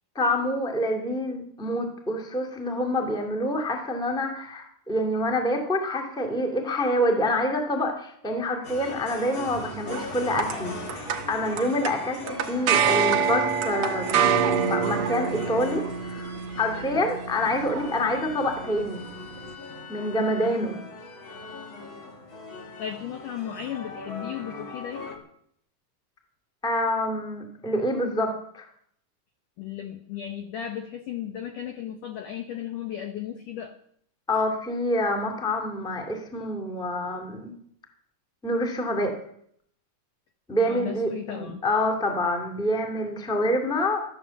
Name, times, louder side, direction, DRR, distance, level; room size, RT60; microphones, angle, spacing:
voice 1, 0.1-19.0 19.9-20.8 26.6-28.7 34.3-37.5 38.4-39.2 40.5-44.0, left 1 dB, ahead, 2 dB, 1.2 m, -27 dB
sound 1, 8.6-25.2, left 3 dB, 35° left, 2.4 m, -40 dB
sound 2, 9.5-19.5, right 7 dB, 85° right, 1.5 m, -28 dB
voice 2, 22.8-25.2 29.6-33.8 40.6-41.6, left 10 dB, 75° left, 5 dB, 2.0 m, -35 dB
13.5 x 12.5 x 7.2 m, 0.67 s
omnidirectional pair, 5.1 m